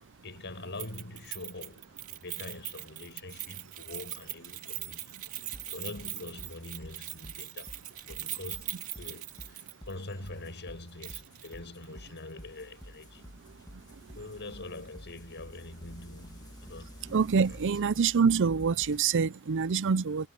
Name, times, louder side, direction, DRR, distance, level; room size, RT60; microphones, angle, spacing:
voice 1, 0.2-7.8 8.0-13.2 14.2-17.0 17.5-17.6, left 2 dB, 55° left, 6.0 m, -44 dB
Keys jangling, 0.8-9.9 10.3-10.4 11.0-11.5 11.8-11.9, right 13 dB, 75° right, 2.3 m, -41 dB
sound 1, 5.5-19.1, equal, 15° left, 2.1 m, -50 dB
voice 2, 13.5-14.2 17.0-20.3, right 6 dB, 55° right, 0.5 m, -27 dB
head